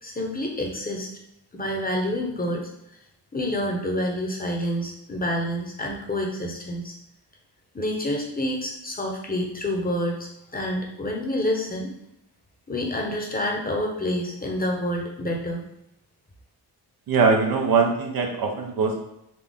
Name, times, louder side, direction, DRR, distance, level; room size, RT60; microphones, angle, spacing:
voice 1, 0.0-1.1 1.5-2.7 3.3-6.9 7.7-11.9 12.7-15.6, left 1 dB, 20° left, 0 dB, 0.9 m, -28 dB
voice 2, 17.1-19.0, right 5 dB, 60° right, 2 dB, 0.9 m, -21 dB
4.2 x 2.7 x 3.5 m, 0.82 s
cardioid pair, 95°, 40 cm